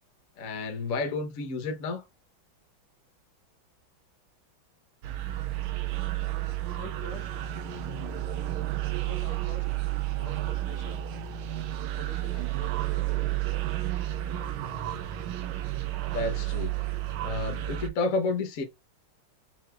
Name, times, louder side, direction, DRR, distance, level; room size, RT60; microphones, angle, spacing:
voice 1, 0.4-2.0 16.1-16.7 17.2-18.6, left 3 dB, 50° left, 1.3 m, -30 dB
sound 1, 5.0-17.9, right 14 dB, 85° right, 1.5 m, -31 dB
voice 2, 6.8-7.3 8.9-9.7 10.2-11.0 12.0-13.4, left 3 dB, 85° left, 1.8 m, -46 dB
7.8 x 2.7 x 2.3 m
omnidirectional pair, 2.2 m